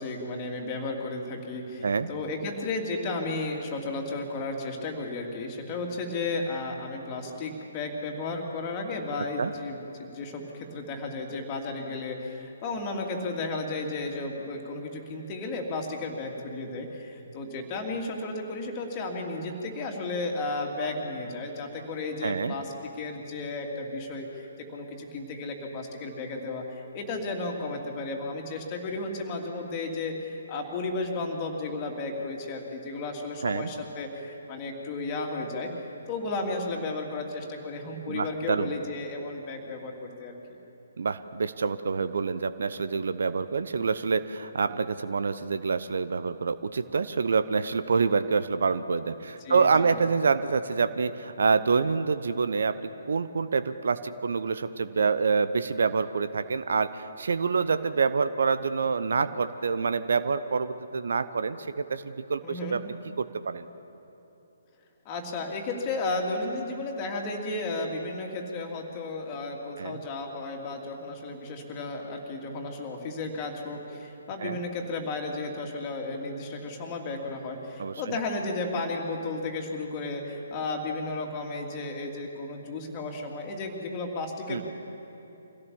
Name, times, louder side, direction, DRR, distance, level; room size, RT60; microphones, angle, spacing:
voice 1, 0.0-22.7 23.0-35.7 36.1-39.9 40.2-40.3 49.4-50.0 62.4-62.8 65.0-84.6, left 2 dB, 25° left, 1 dB, 2.8 m, -33 dB
voice 2, 22.2-22.5 33.4-33.7 38.1-38.7 41.0-52.8 53.1-62.8 63.2-63.7 69.8-70.0 74.4-74.6 77.8-78.2 84.5-84.6, right 5 dB, 55° right, 12 dB, 0.7 m, -27 dB
25.5 x 16.5 x 7.1 m, 3.0 s
figure-of-eight pair, 135°, 0 cm